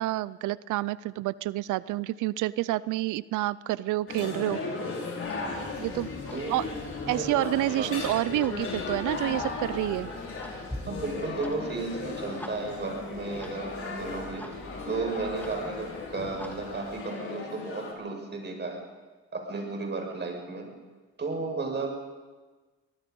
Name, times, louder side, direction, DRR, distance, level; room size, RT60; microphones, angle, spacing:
voice 1, 0.0-4.6 5.8-6.1 6.5-6.6 7.1-10.1 14.9-15.0, right 16 dB, 85° right, 19 dB, 0.6 m, -28 dB
sound 1, 4.1-17.9, left 4 dB, 45° left, 5.7 m, -36 dB
Clock, 5.2-17.0, equal, 5° left, 2.9 m, -46 dB
voice 2, 7.0-7.4 7.8-8.0 10.9-14.5 14.9-18.8 19.3-20.7 21.2-21.9, right 3 dB, 35° right, 2 dB, 6.3 m, -34 dB
24.5 x 19.5 x 5.4 m, 1.3 s
cardioid pair, 90°, 30 cm